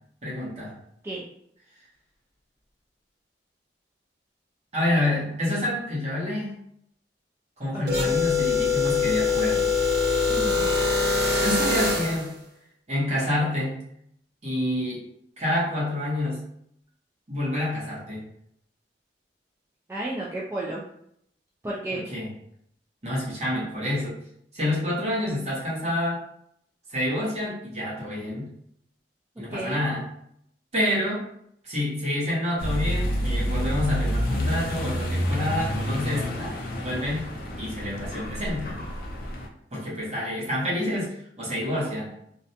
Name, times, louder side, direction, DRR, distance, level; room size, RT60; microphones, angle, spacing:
voice 1, 0.2-0.8 4.7-6.5 7.6-9.7 11.4-12.3 12.9-13.8 14.4-15.0 15.4-16.4 17.3-18.2 22.1-22.3 23.0-24.2 24.5-26.3 26.9-28.5 29.4-30.1 30.7-31.2 31.6-36.5 36.8-37.3 37.6-38.8 39.7-42.1, left 1 dB, 40° right, -7 dB, 1.0 m, -28 dB
voice 2, 7.7-8.1 10.3-10.7 19.9-20.8 21.6-22.0 29.5-29.8, right 2 dB, 15° right, -6 dB, 0.3 m, -32 dB
sound 1, 7.9-12.3, left 4 dB, 60° right, 1.1 m, -23 dB
Accelerating revving vroom, 32.6-39.5, equal, 55° left, 0.4 m, -28 dB
2.5 x 2.1 x 2.7 m, 0.72 s
head